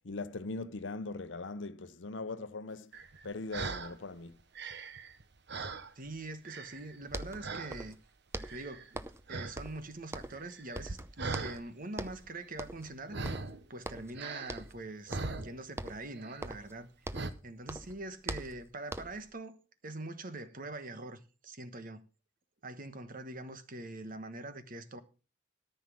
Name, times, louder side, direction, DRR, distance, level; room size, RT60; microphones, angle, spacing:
voice 1, 0.0-2.9 3.2-4.4, left 3 dB, 70° left, 0.8 m, -40 dB
sound 1, 2.9-4.0 4.4-6.2 6.5-7.0 7.4-7.8 8.4-9.0 9.3-9.6 9.8-11.6 13.1-13.6 14.1-15.9 16.1-16.5 17.1-17.3, right 3 dB, 65° right, 1.0 m, -40 dB
voice 2, 5.9-8.0 8.5-9.0 9.3-13.2 13.7-16.9 17.4-19.6 19.8-22.0 22.6-25.0, right 2 dB, 50° right, 1.3 m, -43 dB
sound 2, 6.8-6.9 7.1-8.0 8.3-9.3 9.6-10.5 10.8-11.7 12.0-12.3 12.6-13.0 13.3-14.2 14.5-14.8 15.1-15.5 15.8-17.4 17.7-19.3, right 1 dB, 15° right, 0.7 m, -42 dB
13.5 x 5.8 x 6.0 m
head